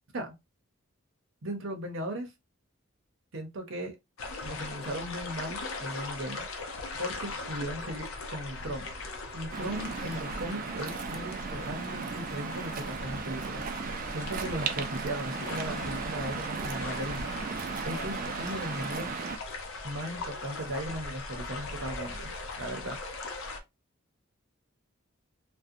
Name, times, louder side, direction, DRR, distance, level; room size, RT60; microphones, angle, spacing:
voice 1, 1.4-2.3 3.3-4.0 4.4-6.5 7.0-8.9 9.3-17.5 17.8-19.1 19.8-22.3 22.6-23.0, right 1 dB, 65° right, 0.7 m, -37 dB
sound 1, 4.2-23.6, left 3 dB, 75° left, 0.6 m, -39 dB
Waves surf, 9.5-19.4, right 5 dB, 40° right, 0.3 m, -36 dB
voice 2, 17.9-18.8, left 2 dB, 25° left, 0.4 m, -47 dB
2.5 x 2.1 x 2.6 m
head